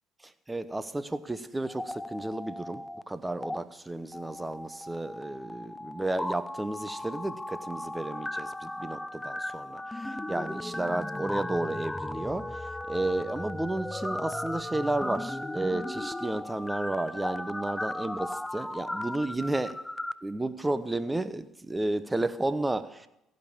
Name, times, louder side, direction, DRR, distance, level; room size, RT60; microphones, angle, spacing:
voice 1, 0.2-19.8 20.2-23.1, right 2 dB, 15° right, 13 dB, 0.9 m, -32 dB
sound 1, 1.6-3.0 3.3-3.6 4.1-20.1, left 1 dB, 10° left, 0.5 m, -36 dB
15.0 x 5.4 x 8.8 m, 0.88 s
supercardioid pair, 70°, 0 cm